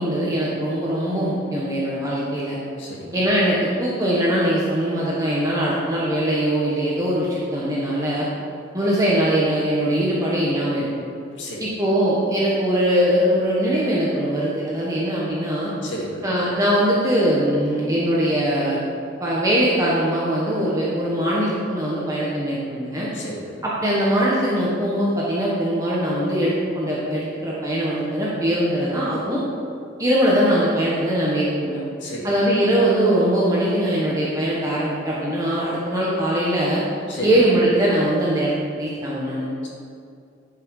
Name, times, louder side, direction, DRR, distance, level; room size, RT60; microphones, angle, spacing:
voice 1, 0.0-2.6 3.1-8.3 8.7-10.9 11.6-15.7 16.2-18.8 19.2-23.1 23.6-29.4 30.0-31.8 32.2-36.8 37.2-39.4, equal, 15° right, -6 dB, 1.3 m, -21 dB
voice 2, 2.8-3.2 11.3-11.7 15.8-16.3 23.1-23.6 32.0-32.5 37.1-37.3 39.6-39.7, left 1 dB, 65° left, -4 dB, 2.3 m, -33 dB
11.5 x 5.9 x 4.9 m, 2.4 s
head